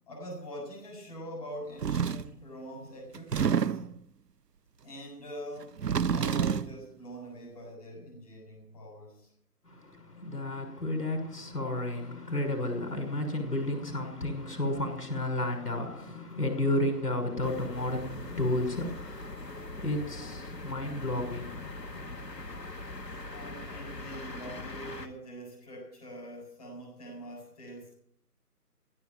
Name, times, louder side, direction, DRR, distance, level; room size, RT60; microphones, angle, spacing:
voice 1, 0.1-3.9 4.8-5.8 6.1-9.3 23.3-27.9, equal, 25° left, 7.9 m, -44 dB
sound 1, 1.8-2.3 3.1-4.0 5.6-6.8, right 7 dB, 75° right, 0.7 m, -28 dB
voice 2, 9.7-22.3, left 1 dB, 70° left, 6.1 m, -32 dB
sound 2, 17.4-25.1, left 2 dB, 90° left, 1.7 m, -42 dB
16.5 x 8.6 x 9.2 m
figure-of-eight pair, 155°, 48 cm